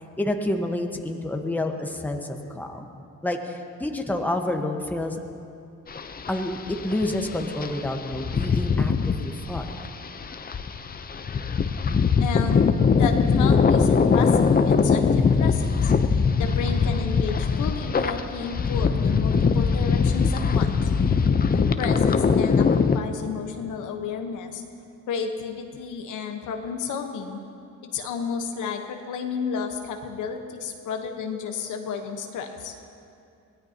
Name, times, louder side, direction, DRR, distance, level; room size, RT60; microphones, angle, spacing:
voice 1, 0.2-5.2 6.3-9.6, left 1 dB, 5° left, 3 dB, 1.2 m, -29 dB
sound 1, 5.9-23.0, left 5 dB, 30° left, 0.7 m, -22 dB
voice 2, 12.2-12.7 12.9-15.9 16.4-20.7 21.8-24.6 25.1-27.4 27.8-32.7, left 6 dB, 85° left, 4 dB, 1.2 m, -32 dB
22.5 x 16.5 x 2.9 m, 2.6 s
cardioid pair, 90°, 30 cm